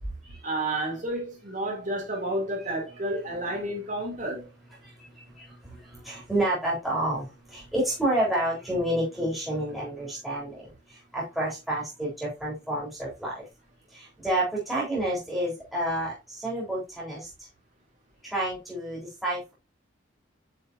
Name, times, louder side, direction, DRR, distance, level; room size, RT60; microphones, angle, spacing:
voice 1, 0.4-4.4, right 1 dB, 40° right, 2.7 m, -30 dB
voice 2, 2.6-3.0 3.3-3.6 4.8-13.5 13.9-17.3 18.2-19.5, right 1 dB, ahead, 3.6 m, -30 dB
9.0 x 5.4 x 2.6 m
head